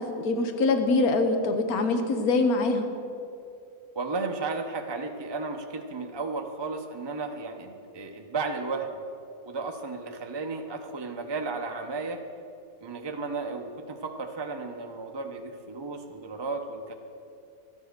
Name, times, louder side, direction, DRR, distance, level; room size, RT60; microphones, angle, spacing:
voice 1, 0.0-2.9, left 3 dB, 75° left, 6 dB, 1.6 m, -24 dB
voice 2, 3.9-9.0 9.4-12.2 12.8-16.9, right 3 dB, 25° right, 3 dB, 0.6 m, -34 dB
13.0 x 9.8 x 6.6 m, 2.6 s
omnidirectional pair, 1.6 m